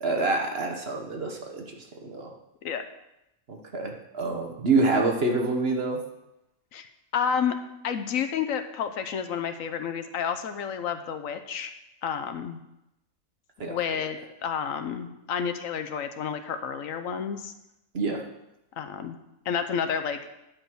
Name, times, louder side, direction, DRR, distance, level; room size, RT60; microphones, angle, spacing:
voice 1, 0.0-1.6 2.0-2.3 3.5-6.0 13.6-13.8 17.9-18.2, right 3 dB, 45° right, 2 dB, 1.3 m, -26 dB
voice 2, 7.1-7.6 7.8-12.6 13.7-17.5 18.8-19.2 19.5-20.3, left 7 dB, 70° left, 8 dB, 1.1 m, -30 dB
10.0 x 5.2 x 6.1 m, 0.89 s
omnidirectional pair, 1.5 m